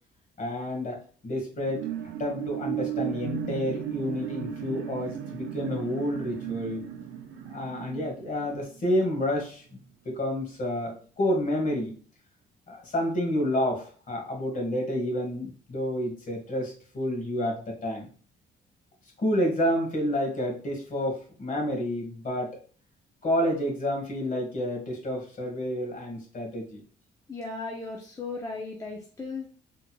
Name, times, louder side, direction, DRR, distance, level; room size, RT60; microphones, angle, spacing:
voice 1, 0.4-1.0 1.2-1.9 2.2-6.8 7.5-9.6 10.0-12.0 12.7-18.1 19.2-22.5 23.2-26.8, left 1 dB, 40° left, 1 dB, 1.4 m, -29 dB
sound 1, 1.5-9.3 9.8-9.9, right 10 dB, 85° right, 0.5 m, -35 dB
voice 2, 27.3-29.5, left 3 dB, 15° left, -1 dB, 0.6 m, -36 dB
3.7 x 2.9 x 2.2 m, 0.42 s
cardioid pair, 90°, 20 cm